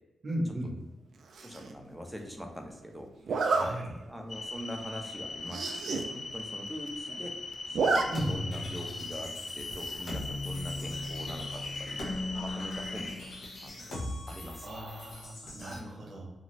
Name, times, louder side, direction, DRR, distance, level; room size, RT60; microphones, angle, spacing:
voice 1, 0.2-0.8 3.4-3.9 8.1-8.4 14.6-16.3, right 1 dB, 55° right, -1 dB, 0.8 m, -36 dB
Zipper (clothing), 1.3-1.7 3.3-3.7 4.2-4.4 4.7-4.8 5.0-5.1 5.4-6.0 6.4-6.5 6.7-7.2 7.5-8.0 8.4-8.5 9.8-10.2, right 4 dB, 70° right, 0.3 m, -30 dB
voice 2, 1.4-3.8 4.0-7.4 7.7-13.3 13.6-13.9 14.3-14.7 15.7-15.8, equal, ahead, 3 dB, 0.6 m, -43 dB
sound 1, 4.3-13.2, left 3 dB, 45° left, 0.4 m, -40 dB
sound 2, 8.1-15.8, left 2 dB, 75° left, 0.8 m, -39 dB
2.5 x 2.4 x 3.0 m, 1.1 s
cardioid pair, 60°, 0 cm